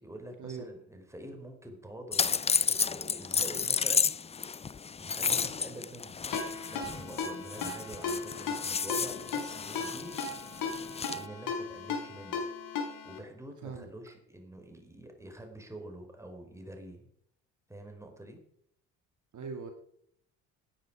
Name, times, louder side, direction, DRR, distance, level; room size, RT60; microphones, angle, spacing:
voice 1, 0.0-2.3 2.7-4.1 5.0-6.2 6.7-10.2 11.1-12.4 13.0-17.1 17.7-18.4, right 1 dB, 5° right, 4 dB, 4.9 m, -46 dB
sound 1, 2.1-11.3, left 6 dB, 15° left, 0.4 m, -32 dB
Ringtone, 6.3-13.2, left 5 dB, 60° left, 4.9 m, -36 dB
voice 2, 19.3-19.7, right 5 dB, 50° right, 4 dB, 2.6 m, -40 dB
16.5 x 9.9 x 5.0 m, 0.70 s
hypercardioid pair, 65°, 38 cm